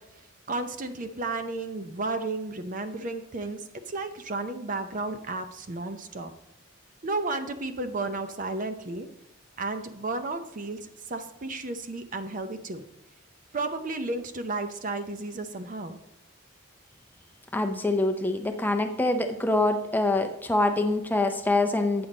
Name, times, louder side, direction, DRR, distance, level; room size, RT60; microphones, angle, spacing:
voice 1, 0.5-6.3 7.0-9.1 9.6-12.8 13.5-16.0, right 3 dB, 40° right, 9 dB, 0.6 m, -33 dB
voice 2, 17.5-22.1, left 2 dB, 10° left, 5 dB, 0.5 m, -25 dB
8.6 x 7.0 x 3.9 m, 0.91 s
head